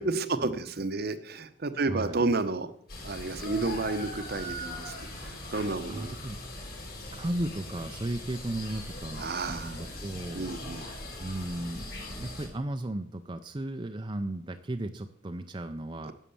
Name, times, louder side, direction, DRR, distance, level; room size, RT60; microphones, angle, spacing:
voice 1, 0.0-2.7 3.0-6.1 9.2-9.8 10.3-10.9 16.0-16.1, right 3 dB, 55° right, 11 dB, 0.8 m, -31 dB
voice 2, 1.9-2.3 5.9-6.4 7.1-10.5 11.2-16.1, right 1 dB, 25° right, 6 dB, 0.5 m, -35 dB
sound 1, 2.9-12.5, left 1 dB, 50° left, 4.3 m, -40 dB
11.0 x 7.3 x 6.9 m, 0.68 s
head